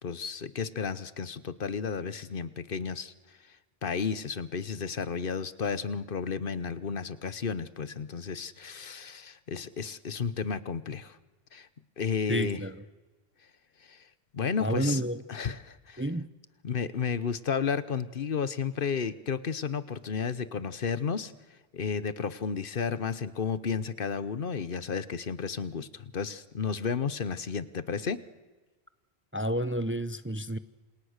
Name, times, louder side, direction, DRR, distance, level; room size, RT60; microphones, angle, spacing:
voice 1, 0.0-3.1 3.8-11.2 11.5-11.7 12.0-12.6 13.9-14.0 14.3-15.0 15.3-16.0 16.6-21.3 21.7-28.2, left 6 dB, 60° left, 1.1 m, -32 dB
voice 2, 12.3-12.8 14.6-15.2 16.0-16.3 29.3-30.6, equal, 15° right, 0.7 m, -30 dB
28.0 x 28.0 x 6.6 m
omnidirectional pair, 1.0 m